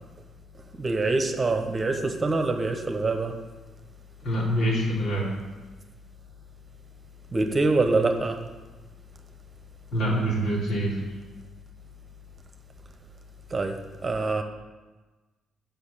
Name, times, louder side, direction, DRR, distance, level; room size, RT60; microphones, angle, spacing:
voice 1, 0.8-3.3 7.3-8.4 13.5-14.4, right 3 dB, 30° right, 5 dB, 1.2 m, -25 dB
voice 2, 4.2-5.3 9.9-11.0, right 1 dB, 75° left, -4 dB, 3.5 m, -25 dB
8.0 x 5.7 x 7.3 m, 1.2 s
cardioid pair, 90°, 0 cm